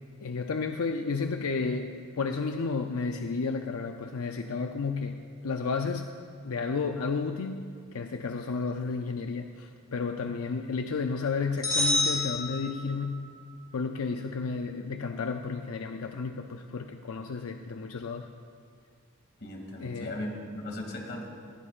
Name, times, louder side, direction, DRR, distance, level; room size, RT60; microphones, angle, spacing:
voice 1, 0.2-6.1 6.4-13.4 13.7-18.3 19.8-20.2, left 4 dB, 85° left, 5 dB, 0.5 m, -32 dB
sound 1, 11.6-13.2, left 1 dB, 20° left, 3.5 m, -28 dB
voice 2, 19.4-21.3, left 1 dB, 50° left, 0 dB, 2.5 m, -37 dB
21.0 x 15.5 x 2.5 m, 2.2 s
head